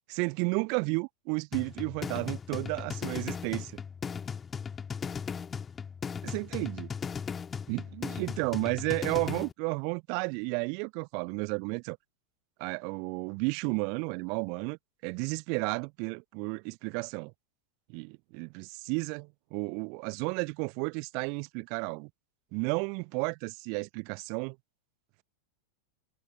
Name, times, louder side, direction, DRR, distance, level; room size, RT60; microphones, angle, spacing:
voice 1, 0.1-3.8 6.2-6.9 7.7-12.0 12.6-17.3 17.9-22.1 22.5-24.6, right 37 dB, 45° right, 0.7 m, -32 dB
sound 1, 1.5-9.5, left 6 dB, 20° left, 1.7 m, -37 dB
figure-of-eight pair, 90°, 0 cm